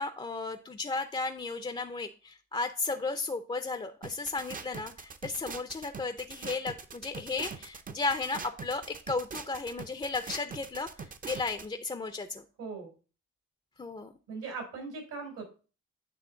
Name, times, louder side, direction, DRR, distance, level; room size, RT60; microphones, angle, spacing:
voice 1, 0.0-12.4 13.8-14.1, left 3 dB, 20° left, 7 dB, 0.5 m, -34 dB
sound 1, 4.0-11.7, right 5 dB, 30° right, 0.6 m, -42 dB
voice 2, 12.6-12.9 14.3-15.4, right 4 dB, 80° right, 2 dB, 3.3 m, -39 dB
9.1 x 3.1 x 3.8 m, 0.35 s
cardioid pair, 90°, 30 cm